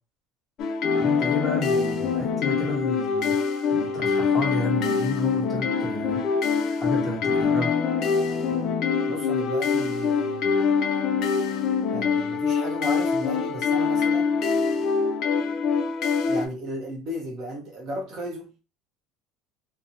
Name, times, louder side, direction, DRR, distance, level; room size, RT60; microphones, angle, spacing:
sound 1, 0.6-16.5, left 5 dB, 45° left, 0.3 m, -24 dB
voice 1, 0.9-3.3 3.7-6.2 6.7-7.8, left 1 dB, 10° left, -4 dB, 1.0 m, -31 dB
voice 2, 9.1-10.6 11.9-14.4 16.3-18.5, equal, 35° right, 0 dB, 0.7 m, -34 dB
2.4 x 2.0 x 2.8 m, 0.31 s
cardioid pair, 160°, 0 cm